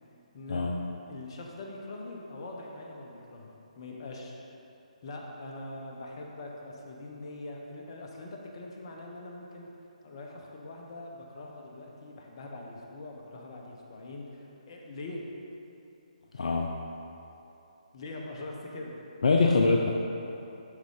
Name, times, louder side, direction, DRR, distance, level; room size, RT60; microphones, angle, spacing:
voice 1, 1.1-4.4 5.0-9.7 10.0-15.2 17.9-18.9, left 2 dB, 40° left, 0 dB, 1.0 m, -43 dB
voice 2, 16.3-16.7 19.2-19.9, left 3 dB, 60° left, 0 dB, 0.5 m, -24 dB
11.0 x 3.7 x 3.8 m, 2.9 s
figure-of-eight pair, 145°, 4 cm